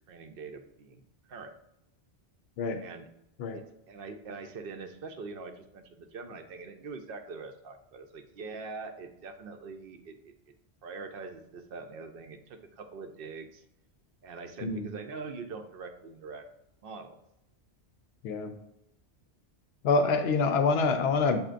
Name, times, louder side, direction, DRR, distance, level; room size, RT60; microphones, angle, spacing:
voice 1, 0.1-1.0 1.3-1.5 2.8-3.1 3.5-10.3 10.8-13.6 14.2-16.4 16.8-17.2, right 4 dB, 65° right, 6 dB, 0.7 m, -43 dB
voice 2, 19.8-21.4, left 4 dB, 70° left, 7 dB, 0.8 m, -26 dB
7.4 x 2.8 x 2.4 m, 0.81 s
omnidirectional pair, 1.1 m